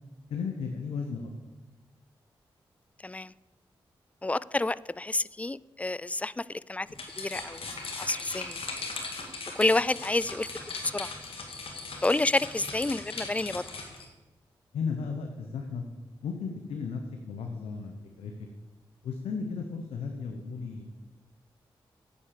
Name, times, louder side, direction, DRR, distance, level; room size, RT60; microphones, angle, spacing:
voice 1, 0.3-1.3 14.7-15.8 16.2-17.0 17.3-18.3 19.0-20.8, left 5 dB, 90° left, 4 dB, 0.8 m, -34 dB
voice 2, 3.0-3.3 4.2-6.9 7.2-7.7 8.0-8.6 9.6-10.5 10.8-11.1 12.0-13.6, left 2 dB, 15° left, 20 dB, 0.3 m, -29 dB
sound 1, 6.9-14.0, left 3 dB, 70° left, 2.0 m, -39 dB
8.6 x 8.2 x 6.6 m, 1.1 s
supercardioid pair, 40°, 10 cm